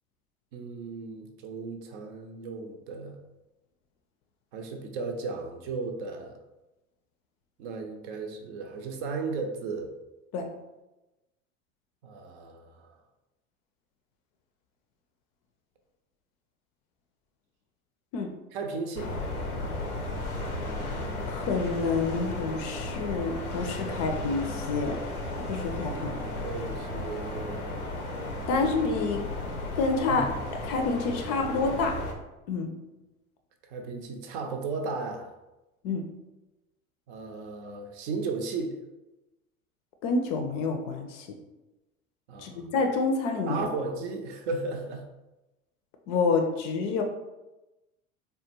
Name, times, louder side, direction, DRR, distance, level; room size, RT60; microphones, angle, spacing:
voice 1, 0.5-3.2 4.5-6.4 7.6-9.9 12.0-12.9 18.5-19.1 25.9-27.8 30.1-30.3 33.6-35.3 37.1-38.8 42.3-42.7 43.5-45.1, right 4 dB, 55° right, 4 dB, 0.6 m, -35 dB
sound 1, 19.0-32.1, left 2 dB, 85° left, 0.6 m, -34 dB
voice 2, 21.3-25.0 25.5-26.0 28.5-29.3 29.8-30.3 30.6-32.0 32.5-32.7 35.8-36.1 40.0-41.4 42.4-43.7 46.1-47.0, left 4 dB, 40° left, 4 dB, 0.5 m, -28 dB
3.5 x 2.2 x 2.8 m, 1.0 s
figure-of-eight pair, 75°, 43 cm